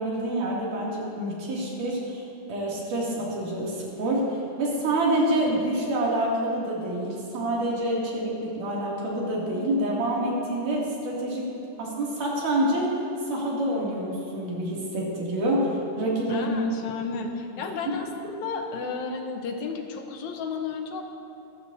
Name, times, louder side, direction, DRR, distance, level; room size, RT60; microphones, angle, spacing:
voice 1, 0.0-2.2 2.5-11.5 11.8-13.0 13.3-16.5 17.6-18.0, right 1 dB, 80° right, -5 dB, 4.2 m, -27 dB
voice 2, 16.3-18.1 18.3-21.0, left 5 dB, 70° left, 4 dB, 2.1 m, -32 dB
24.0 x 12.5 x 2.7 m, 2.8 s
omnidirectional pair, 3.6 m